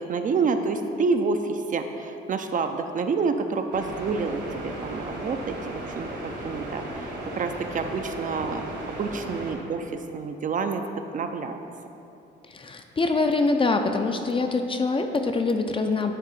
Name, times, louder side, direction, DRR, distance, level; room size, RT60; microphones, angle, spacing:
voice 1, 0.0-10.9 11.1-11.6, right 4 dB, 40° right, 6 dB, 0.4 m, -28 dB
sound 1, 3.7-9.5, right 1 dB, 65° right, 1.3 m, -36 dB
voice 2, 12.5-16.1, left 3 dB, 25° left, 5 dB, 0.5 m, -24 dB
9.1 x 3.6 x 4.2 m, 2.8 s
cardioid pair, 90°, 20 cm